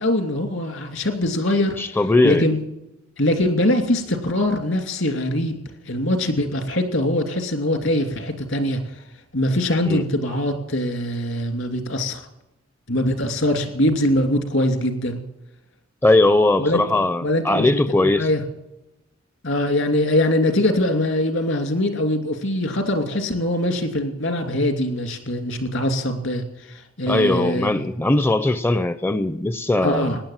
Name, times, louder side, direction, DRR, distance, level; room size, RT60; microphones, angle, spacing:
voice 1, 0.0-1.8 2.2-2.6 3.2-5.6 5.9-8.8 9.3-12.2 12.9-15.2 16.6-16.8 17.2-17.7 18.0-18.4 19.4-27.9 29.8-30.2, left 1 dB, 70° left, 2.8 m, -22 dB
voice 2, 1.8-2.5 9.9-10.1 16.0-18.3 27.1-30.2, left 2 dB, 10° left, 0.4 m, -19 dB
18.0 x 10.5 x 7.4 m
head